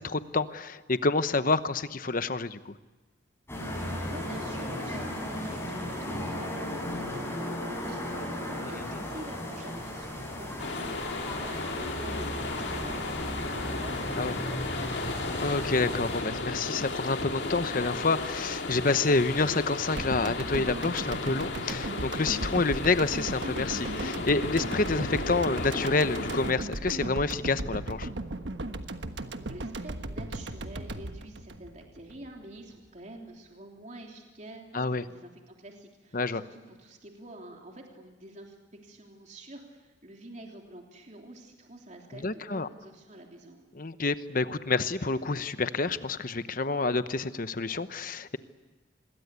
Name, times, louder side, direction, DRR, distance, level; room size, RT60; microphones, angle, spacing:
voice 1, 0.0-2.7 8.6-9.0 14.2-14.3 15.4-28.1 34.7-35.0 36.1-36.4 42.1-42.7 43.7-48.4, left 3 dB, 45° left, 12 dB, 1.0 m, -28 dB
sound 1, 3.5-16.2, left 1 dB, 15° left, 8.0 m, -36 dB
voice 2, 4.1-15.0 29.4-43.7, right 1 dB, 40° right, 1 dB, 3.3 m, -47 dB
sound 2, 10.6-26.5, left 2 dB, 65° left, 2.7 m, -34 dB
sound 3, 20.0-32.3 32.6-32.7, right 2 dB, 65° right, 1.3 m, -37 dB
26.0 x 21.5 x 8.3 m, 1.3 s
head